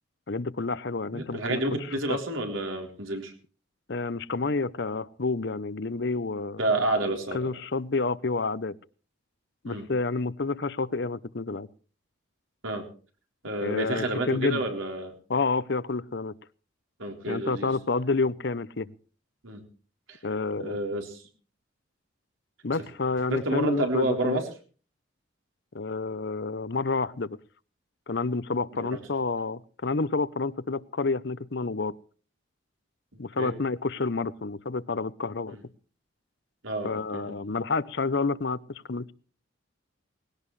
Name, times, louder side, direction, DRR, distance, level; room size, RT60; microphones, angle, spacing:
voice 1, 0.3-1.6 2.1-2.2 3.9-6.6 7.1-8.7 9.6-11.7 13.6-14.6 15.3-16.3 17.3-18.9 20.2-20.8 22.6-24.4 25.7-27.4 28.1-31.9 33.2-35.6 36.8-39.1, left 3 dB, 55° left, 0.7 m, -29 dB
voice 2, 1.1-3.3 6.6-7.4 9.6-9.9 12.6-12.9 13.4-15.1 17.0-17.7 19.4-19.6 20.1-20.2 20.6-21.2 23.3-24.5 28.7-29.0 33.4-33.5 35.5-35.6 36.6-37.3, right 1 dB, 75° right, 3.8 m, -29 dB
20.0 x 17.0 x 3.2 m
head